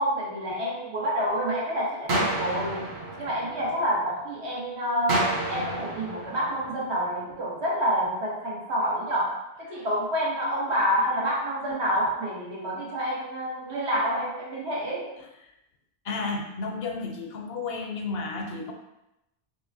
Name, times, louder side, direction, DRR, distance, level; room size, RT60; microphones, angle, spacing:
voice 1, 0.0-2.9 3.2-15.1, equal, 90° right, -5 dB, 1.3 m, -28 dB
sound 1, 2.1-4.1 5.1-7.1, right 1 dB, 75° right, 1.0 m, -30 dB
voice 2, 16.0-18.7, left 3 dB, 70° left, 2 dB, 0.8 m, -32 dB
5.1 x 2.0 x 2.6 m, 0.89 s
omnidirectional pair, 1.1 m